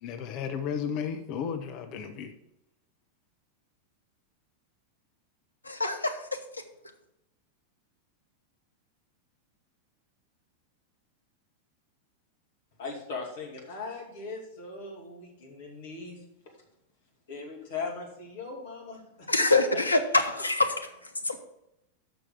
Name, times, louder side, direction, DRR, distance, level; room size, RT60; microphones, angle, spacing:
voice 1, 0.0-2.3, left 7 dB, 40° left, 6 dB, 0.8 m, -33 dB
voice 2, 5.6-6.2 19.3-20.7 21.2-21.4, left 2 dB, 80° left, 6 dB, 0.9 m, -24 dB
voice 3, 12.8-16.2 17.3-19.5, left 4 dB, 55° left, 0 dB, 2.4 m, -39 dB
6.2 x 6.1 x 6.8 m, 0.83 s
figure-of-eight pair, 90°, 0 cm